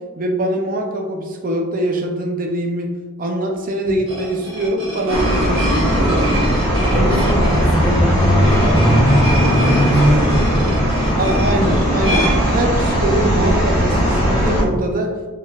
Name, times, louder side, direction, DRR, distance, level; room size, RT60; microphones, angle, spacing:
voice 1, 0.2-2.9 3.2-6.5 11.2-15.1, right 1 dB, 40° right, 2 dB, 0.5 m, -23 dB
sound 1, 3.8-13.2, equal, 60° right, 1.4 m, -26 dB
sound 2, 5.1-14.6, equal, 30° left, 1.4 m, -17 dB
voice 2, 6.9-11.7, left 1 dB, 5° left, -5 dB, 0.8 m, -26 dB
4.2 x 4.2 x 2.4 m, 1.4 s
head